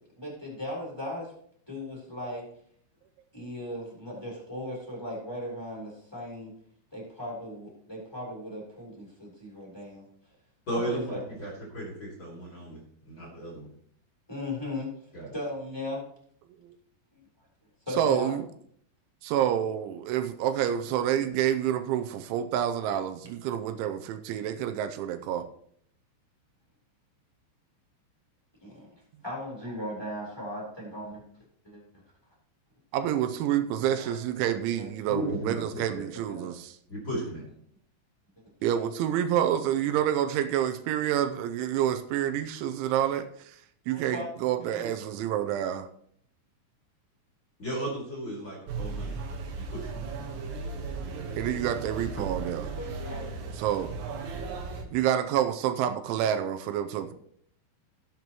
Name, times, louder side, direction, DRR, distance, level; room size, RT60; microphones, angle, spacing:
voice 1, 0.2-1.3 1.7-2.4 3.3-6.5 6.9-10.0 10.7-11.2 14.3-14.9 15.3-16.0 17.1-17.2 17.9-18.3 28.6-28.9 29.2-31.2 31.6-31.8 34.0-34.1 34.8-34.9 36.3-36.5 38.7-38.8 43.9-44.3 44.7-44.9 52.8-53.3, left 1 dB, 5° left, -4 dB, 3.0 m, -37 dB
voice 2, 10.7-13.7 15.1-15.4 35.1-36.0 36.9-37.4 47.6-49.2 49.5-50.0, right 1 dB, 35° left, -3 dB, 2.5 m, -35 dB
voice 3, 18.0-18.5 19.2-25.5 32.9-36.7 38.6-43.3 43.9-45.9 51.4-52.6 53.6-53.9 54.9-57.1, right 10 dB, 85° right, 9 dB, 3.1 m, -28 dB
sound 1, 48.7-54.8, right 4 dB, 65° right, 3.1 m, -36 dB
17.5 x 7.7 x 3.0 m, 0.64 s
omnidirectional pair, 5.4 m